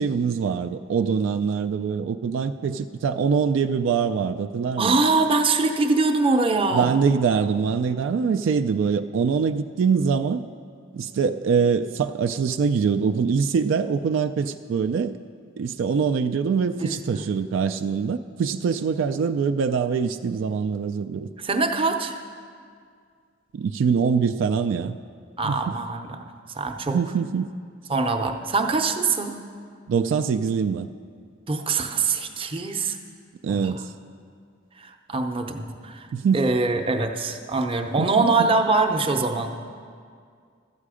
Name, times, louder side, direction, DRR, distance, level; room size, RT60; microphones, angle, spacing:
voice 1, 0.0-5.0 6.7-10.4 10.9-15.1 15.6-21.3 23.5-25.0 25.4-25.6 26.9-27.5 29.9-30.9 33.4-33.9 36.1-36.4 38.0-38.1 38.4-38.5, right 6 dB, 75° right, 9 dB, 0.3 m, -23 dB
voice 2, 4.8-6.9 16.8-17.2 21.4-22.2 25.4-27.0 27.9-29.3 31.5-33.0 33.5-33.7 34.8-36.1 36.3-39.5, right 3 dB, 30° right, 4 dB, 0.6 m, -23 dB
12.5 x 8.3 x 4.9 m, 2.2 s
head